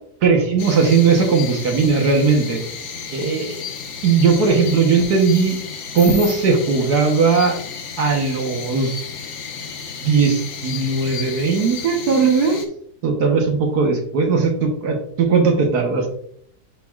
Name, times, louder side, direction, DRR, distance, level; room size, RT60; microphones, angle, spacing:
voice 1, 0.2-2.6 3.1-3.4 4.0-5.6 5.9-7.6 8.0-8.9 10.0-12.6 13.0-16.1, right 4 dB, 75° right, 2 dB, 1.6 m, -18 dB
sound 1, 0.6-12.7, left 6 dB, 85° left, 1.6 m, -33 dB
10.0 x 4.5 x 2.4 m, 0.67 s
omnidirectional pair, 1.7 m